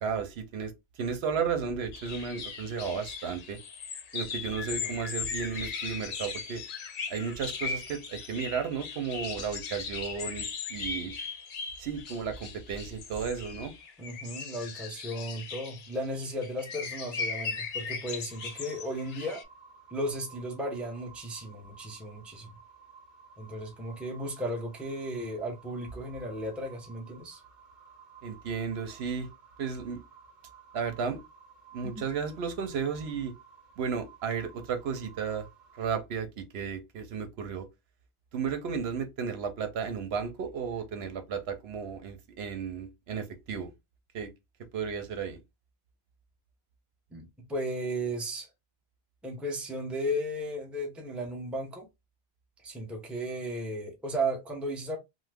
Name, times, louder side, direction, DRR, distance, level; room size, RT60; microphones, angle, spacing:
voice 1, 0.0-3.6 4.1-6.6 7.1-11.1 11.8-13.7 28.2-29.3 29.6-30.0 30.7-31.2 31.7-33.3 33.8-35.5 35.8-37.7 38.3-43.7 44.1-44.3 44.7-45.4, right 6 dB, 75° right, 0.9 m, -34 dB
sound 1, 1.9-19.4, left 5 dB, 60° left, 0.7 m, -38 dB
voice 2, 14.0-19.4 19.9-22.5 23.4-27.4 31.8-32.1 47.1-48.5 49.2-51.9 52.6-55.0, right 1 dB, ahead, 0.6 m, -35 dB
sound 2, 18.3-36.0, right 6 dB, 50° right, 0.9 m, -55 dB
3.0 x 2.0 x 3.4 m
omnidirectional pair, 1.1 m